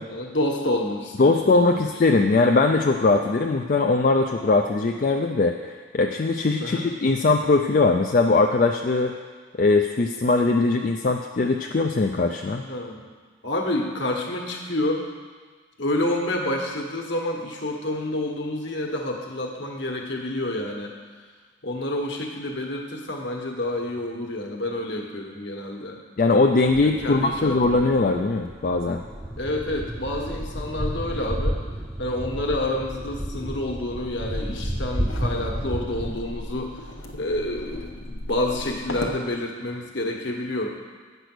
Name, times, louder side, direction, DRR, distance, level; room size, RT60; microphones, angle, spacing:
voice 1, 0.1-1.9 3.8-3.9 6.6-6.8 12.6-13.1 13.4-15.1 15.8-20.9 21.6-26.0 26.8-27.9 29.4-31.6 32.0-36.8 37.1-40.7, left 1 dB, 60° left, 1 dB, 1.3 m, -28 dB
voice 2, 1.2-9.2 9.6-12.6 26.2-29.0, left 3 dB, 40° left, 2 dB, 0.4 m, -20 dB
sound 1, 26.6-36.2, equal, 15° right, 0.6 m, -32 dB
sound 2, 33.9-39.2, left 1 dB, 80° left, 1.0 m, -37 dB
9.1 x 6.7 x 6.1 m, 1.5 s
head